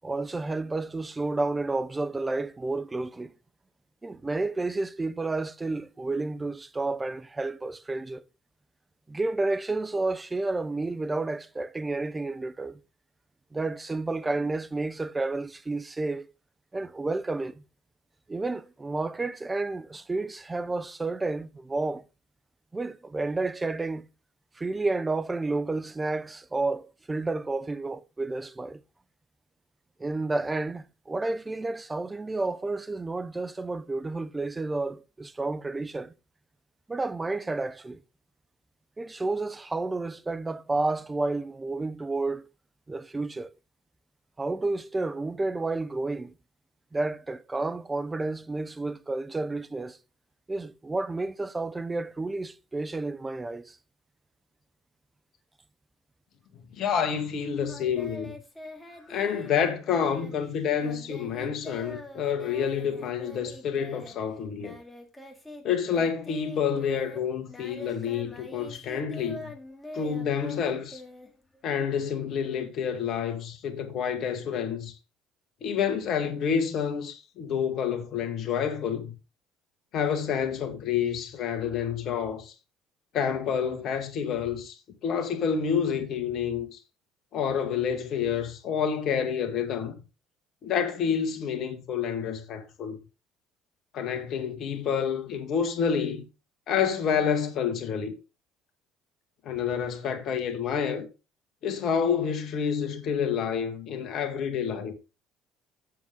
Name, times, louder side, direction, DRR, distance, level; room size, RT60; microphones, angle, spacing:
voice 1, 0.0-3.3 4.0-8.2 9.1-12.8 13.5-16.3 16.7-17.6 18.3-22.0 22.7-24.1 24.6-28.8 30.0-36.1 36.9-38.0 39.0-42.5 42.9-43.5 44.4-46.3 46.9-50.0 50.5-53.8, right 3 dB, 20° right, 0.7 m, -31 dB
voice 2, 56.8-58.4 59.1-64.8 65.6-69.5 69.9-71.0 71.6-74.9 75.6-79.1 79.9-82.5 83.1-84.8 85.0-86.8 87.3-90.0 90.6-93.0 93.9-96.2 96.7-98.1 99.4-101.1 101.6-104.9, left 7 dB, 60° left, 1.8 m, -28 dB
Singing, 57.7-65.6 65.9-71.7, left 1 dB, 10° left, 2.6 m, -44 dB
7.7 x 7.1 x 3.7 m
hypercardioid pair, 65°, 0 cm